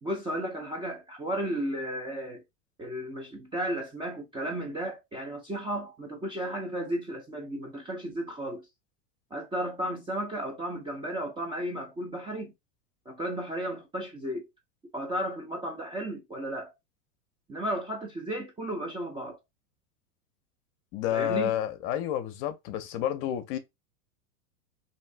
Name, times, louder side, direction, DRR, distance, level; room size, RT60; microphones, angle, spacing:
voice 1, 0.0-2.4 2.8-8.7 9.3-12.5 13.1-14.5 14.9-16.7 17.5-19.4 21.1-21.5, right 1 dB, 10° right, 0.4 m, -34 dB
voice 2, 20.9-23.6, left 11 dB, 45° left, 0.6 m, -30 dB
2.7 x 2.4 x 3.2 m
hypercardioid pair, 115°, 45 cm